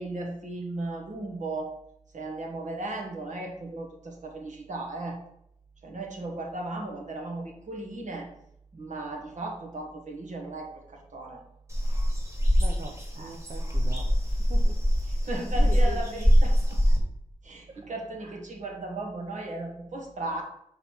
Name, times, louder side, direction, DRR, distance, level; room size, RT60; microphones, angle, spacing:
voice 1, 0.0-1.7 2.1-5.2 5.8-8.3 8.7-11.4 13.2-13.3 13.8-14.0 15.1-16.8 17.4-20.4, right 2 dB, 90° right, 1 dB, 1.3 m, -36 dB
sound 1, 11.7-17.0, equal, 25° right, 1.5 m, -23 dB
voice 2, 12.6-14.8 15.5-16.0 17.7-17.8 18.2-18.4, right 3 dB, 60° right, 2 dB, 0.6 m, -42 dB
5.5 x 4.1 x 4.4 m, 0.76 s
wide cardioid pair, 90°, 12 cm